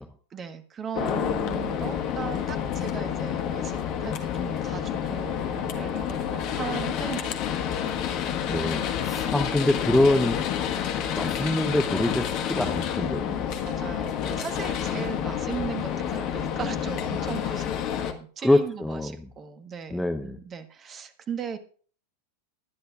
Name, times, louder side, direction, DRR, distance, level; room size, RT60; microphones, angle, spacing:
voice 1, 0.3-7.9 9.1-9.3 13.6-21.6, right 7 dB, 25° right, 10 dB, 1.4 m, -38 dB
sound 1, 0.9-18.1, left 9 dB, 40° left, 1.5 m, -29 dB
voice 2, 8.5-10.5 11.1-13.4 18.4-19.1 19.9-20.4, left 1 dB, 5° left, 6 dB, 0.8 m, -25 dB
21.0 x 10.5 x 2.5 m, 0.44 s
figure-of-eight pair, 90°, 0 cm